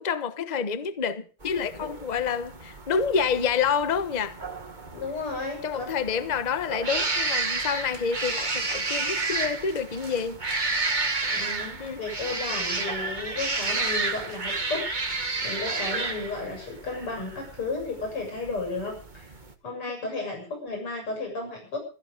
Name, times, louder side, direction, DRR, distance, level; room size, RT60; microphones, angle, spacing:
voice 1, 0.0-4.4 5.6-10.4 11.8-12.0, left 6 dB, 30° left, 0.9 m, -28 dB
sound 1, 1.4-19.5, right 3 dB, 25° right, 1.5 m, -31 dB
voice 2, 4.9-5.9 11.3-19.3 19.6-21.8, left 3 dB, 85° left, 8.1 m, -33 dB
16.0 x 14.5 x 5.3 m
omnidirectional pair, 2.4 m